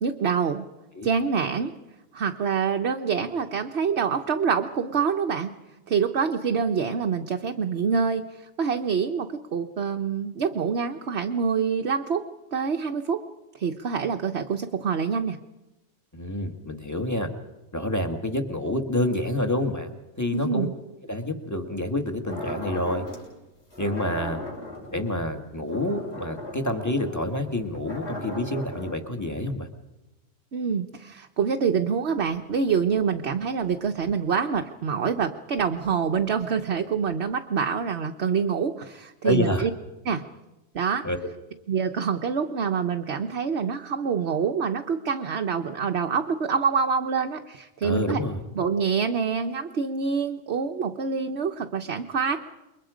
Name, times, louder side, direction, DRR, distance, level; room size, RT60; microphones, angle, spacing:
voice 1, 0.0-0.6 1.0-1.7 2.1-5.5 5.9-12.2 12.5-13.2 13.5-15.4 20.3-20.7 30.5-39.7 40.0-40.2 40.7-41.1 41.7-48.2 48.5-52.4, right 6 dB, 50° right, 4 dB, 1.1 m, -26 dB
voice 2, 16.1-17.3 17.7-20.7 21.1-23.0 23.8-24.4 24.9-29.7 39.2-39.7 41.0-41.3 47.8-48.4, left 1 dB, 10° left, 5 dB, 1.8 m, -28 dB
sound 1, 22.2-23.3 23.7-28.9, left 1 dB, 45° left, 7.0 m, -38 dB
28.5 x 23.0 x 5.1 m, 1.0 s
omnidirectional pair, 1.6 m